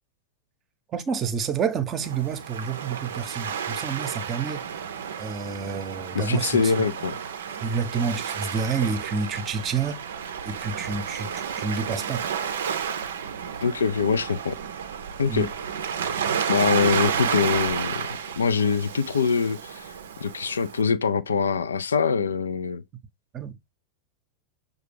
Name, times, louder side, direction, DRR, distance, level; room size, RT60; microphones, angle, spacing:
voice 1, 0.9-4.7 5.2-6.7 7.6-10.0 10.4-12.3 15.3-15.5 23.3-23.7, right 5 dB, 30° right, 0.7 m, -29 dB
Waves surf, 2.0-20.8, right 7 dB, 65° right, 0.5 m, -31 dB
voice 2, 6.1-7.2 13.6-14.6 15.2-15.5 16.5-18.1 18.4-19.9 20.2-22.8, left 5 dB, 70° left, 0.4 m, -24 dB
6.5 x 2.3 x 3.2 m
figure-of-eight pair, 90°, 0 cm